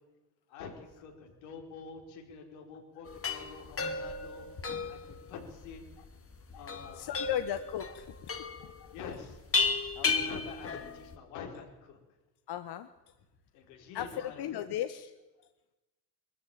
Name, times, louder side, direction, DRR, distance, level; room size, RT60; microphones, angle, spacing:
voice 1, 0.5-4.5 4.9-5.8 6.5-7.4 8.9-9.4 10.0-12.0 13.5-14.6, left 6 dB, 80° left, 1 dB, 4.9 m, -46 dB
sound 1, 3.1-11.2, left 4 dB, 30° left, 2.2 m, -34 dB
voice 2, 6.9-8.9 10.0-10.3 12.5-12.9 13.9-15.1, left 11 dB, 55° left, 10 dB, 1.2 m, -37 dB
21.5 x 14.0 x 9.2 m, 1.1 s
supercardioid pair, 75°, 47 cm